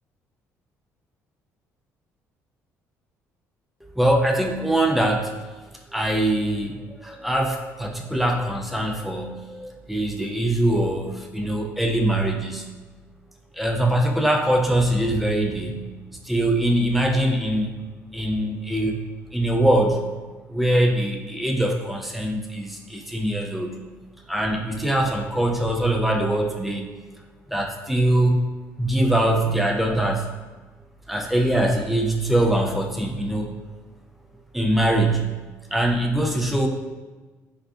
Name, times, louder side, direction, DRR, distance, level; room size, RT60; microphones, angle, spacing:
voice 1, 3.8-5.3 5.9-12.7 13.5-15.9 16.2-17.7 18.1-19.0 19.3-20.0 20.5-23.8 24.3-26.9 27.5-28.4 28.8-30.3 31.1-33.5 34.5-35.3 35.7-36.7, right 1 dB, ahead, 2 dB, 0.3 m, -22 dB
3.6 x 3.3 x 2.4 m, 1.3 s
cardioid pair, 155°, 6 cm